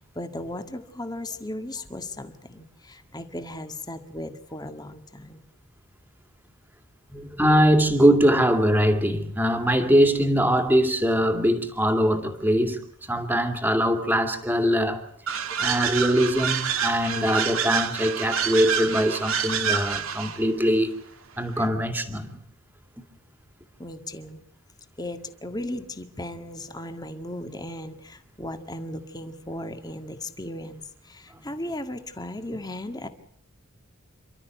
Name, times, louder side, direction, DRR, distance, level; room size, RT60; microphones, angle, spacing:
voice 1, 0.0-5.4 21.6-21.7 23.8-24.4 25.0-33.1, left 1 dB, 20° left, 8 dB, 1.8 m, -36 dB
voice 2, 7.1-12.8 13.1-15.0 15.6-20.9 21.4-22.3, equal, 10° right, 6 dB, 2.4 m, -22 dB
sound 1, 15.3-20.4, right 7 dB, 70° right, 1.8 m, -27 dB
29.0 x 13.0 x 9.2 m, 0.73 s
head